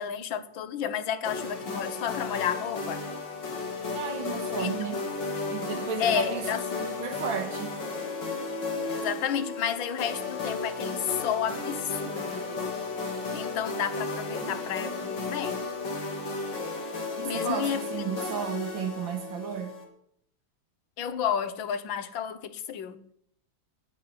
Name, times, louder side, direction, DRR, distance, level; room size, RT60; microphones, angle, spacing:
voice 1, 0.0-3.0 4.6-4.8 6.0-6.6 8.8-12.6 13.3-15.6 17.2-17.9 21.0-23.0, left 8 dB, 80° left, 1.8 m, -31 dB
sound 1, 1.2-19.8, left 3 dB, 65° left, 3.4 m, -34 dB
voice 2, 3.9-5.0 5.5-6.5 6.8-7.8 17.2-19.8, right 8 dB, 80° right, 2.0 m, -33 dB
10.0 x 9.9 x 8.3 m
omnidirectional pair, 2.1 m